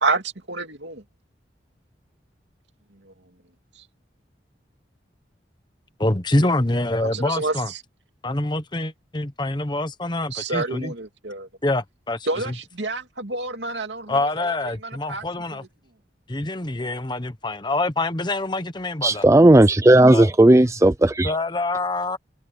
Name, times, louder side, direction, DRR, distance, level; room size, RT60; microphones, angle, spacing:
voice 1, 0.5-1.0 6.4-6.5 7.0-7.8 10.3-11.5 12.3-14.2 14.5-14.6 14.8-15.2, right 3 dB, 80° right, 2.6 m, -28 dB
voice 2, 6.0-7.7 8.2-10.9 11.6-12.6 14.1-15.6 16.3-19.3 20.1-20.3 21.2-22.2, left 2 dB, 25° left, 1.1 m, -25 dB
voice 3, 19.0-21.3, right 1 dB, 15° right, 0.5 m, -14 dB
head